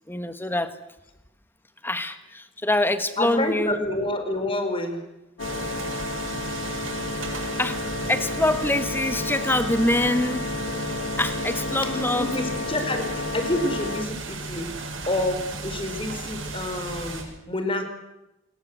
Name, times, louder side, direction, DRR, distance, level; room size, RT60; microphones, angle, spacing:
voice 1, 0.1-0.8 1.8-3.8 7.6-7.8 8.1-10.5 11.2-12.4, left 1 dB, 10° left, 10 dB, 1.8 m, -25 dB
voice 2, 3.2-5.0 11.8-17.8, left 1 dB, 30° left, 7 dB, 4.6 m, -28 dB
sound 1, 5.4-14.0, left 3 dB, 80° left, 1.9 m, -32 dB
sound 2, 5.4-17.2, right 3 dB, 90° right, 7.0 m, -34 dB
27.5 x 22.5 x 8.0 m, 0.92 s
head